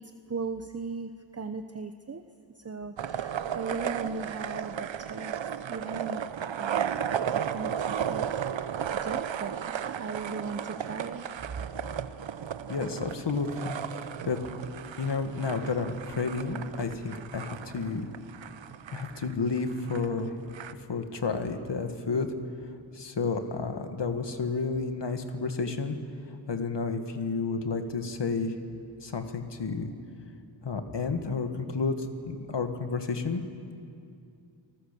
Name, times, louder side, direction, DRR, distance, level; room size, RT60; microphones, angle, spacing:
voice 1, 0.0-2.2 2.6-6.2 6.6-8.2 9.0-11.3 11.5-11.7, right 4 dB, 35° right, 8 dB, 0.9 m, -38 dB
sound 1, 3.0-20.7, right 8 dB, 75° right, 0.9 m, -34 dB
voice 2, 12.7-14.4 15.0-18.1 18.9-20.4 20.8-22.3 22.9-26.0 26.5-28.5 29.0-29.9 30.6-33.4, left 4 dB, 65° left, 6 dB, 1.9 m, -31 dB
28.5 x 19.5 x 6.9 m, 2.5 s
wide cardioid pair, 70°, 46 cm